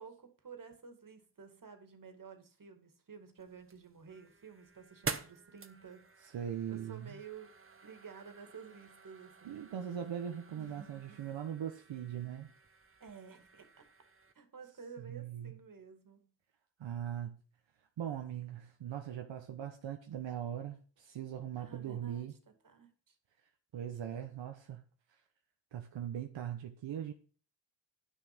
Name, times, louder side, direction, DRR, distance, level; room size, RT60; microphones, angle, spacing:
voice 1, 0.0-7.5 7.8-9.6 10.6-11.2 13.0-13.9 14.3-16.3 21.6-22.4 22.6-23.2, right 6 dB, 45° right, 2.4 m, -52 dB
sound 1, 3.4-14.3, right 4 dB, 30° right, 1.1 m, -48 dB
voice 2, 6.3-7.2 9.4-12.5 15.0-15.5 16.8-17.4 18.0-22.3 23.7-24.8 25.7-27.1, right 9 dB, 80° right, 1.1 m, -40 dB
9.5 x 6.5 x 6.1 m
cardioid pair, 75°, 44 cm